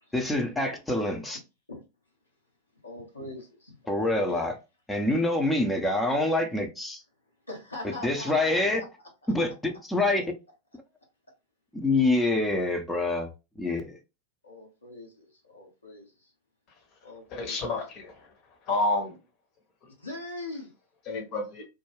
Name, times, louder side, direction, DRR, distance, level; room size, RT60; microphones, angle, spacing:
voice 1, 0.1-1.4 3.9-4.5 4.9-7.0 8.0-8.8 9.3-10.3 11.7-13.3 13.6-14.0, left 2 dB, 10° left, 0.6 m, -26 dB
voice 2, 2.8-4.5 7.5-8.9 9.2-9.5 14.4-16.3 17.0-17.6 20.0-20.7, left 2 dB, 80° left, 0.9 m, -42 dB
voice 3, 17.3-18.3 18.7-19.2 21.1-21.6, left 2 dB, 40° left, 0.9 m, -29 dB
2.3 x 2.2 x 3.2 m
figure-of-eight pair, 90°, 0 cm